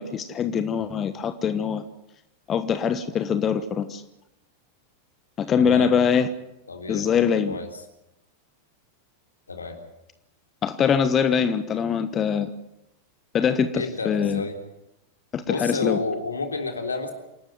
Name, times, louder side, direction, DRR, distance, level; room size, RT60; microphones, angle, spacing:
voice 1, 0.0-1.8 2.5-4.0 5.4-6.3 6.9-7.6 10.6-12.5 13.3-14.4 15.3-16.0, left 7 dB, 25° left, 11 dB, 1.3 m, -23 dB
voice 2, 5.6-6.0 6.7-7.1 7.5-7.7 9.5-9.8 13.7-14.6 15.5-17.1, left 3 dB, 75° left, 4 dB, 3.5 m, -30 dB
28.0 x 12.5 x 9.6 m, 0.88 s
figure-of-eight pair, 90°, 0 cm